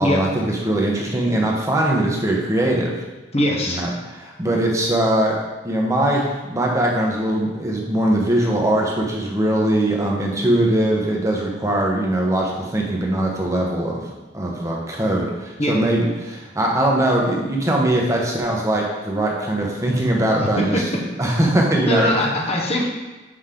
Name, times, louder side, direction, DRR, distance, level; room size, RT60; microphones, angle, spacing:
voice 1, 0.0-3.0 3.7-5.4 5.6-14.1 14.3-20.8 21.2-22.1, right 1 dB, 15° right, -2 dB, 1.2 m, -21 dB
voice 2, 3.3-3.9 15.6-15.8 20.4-20.8 21.9-22.9, left 1 dB, 35° left, -1 dB, 1.2 m, -21 dB
7.7 x 5.3 x 3.8 m, 1.2 s
head